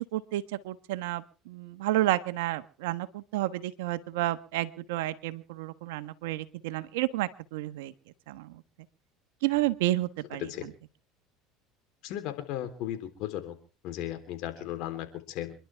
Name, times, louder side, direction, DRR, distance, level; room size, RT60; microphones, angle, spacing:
voice 1, 0.0-7.9 8.3-8.6 9.4-10.4, right 16 dB, 85° right, 12 dB, 1.2 m, -31 dB
voice 2, 12.0-13.6 13.8-15.5, left 12 dB, 65° left, 8 dB, 3.6 m, -36 dB
28.0 x 11.5 x 3.5 m, 0.36 s
supercardioid pair, 90°, 0 cm